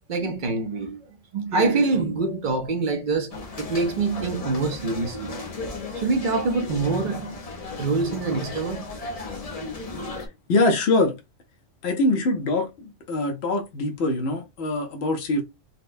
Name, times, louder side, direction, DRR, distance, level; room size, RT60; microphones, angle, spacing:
voice 1, 0.1-1.0 1.3-5.3 6.0-7.4 7.8-8.9, right 3 dB, 45° right, 0.8 m, -25 dB
sound 1, 3.3-10.3, left 3 dB, 35° left, 0.7 m, -35 dB
voice 2, 10.5-11.1 11.8-15.4, left 2 dB, 60° left, 1.1 m, -23 dB
4.2 x 2.2 x 2.5 m
omnidirectional pair, 1.3 m